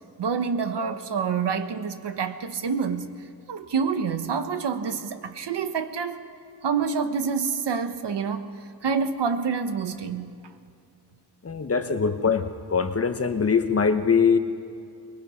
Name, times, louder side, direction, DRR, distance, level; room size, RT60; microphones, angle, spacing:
voice 1, 0.2-3.1 3.5-6.2 6.6-8.5 8.8-10.4, right 6 dB, 85° right, 1.2 m, -27 dB
voice 2, 11.4-14.4, left 5 dB, 35° left, 1.0 m, -22 dB
24.0 x 21.0 x 5.7 m
wide cardioid pair, 175°, 40 cm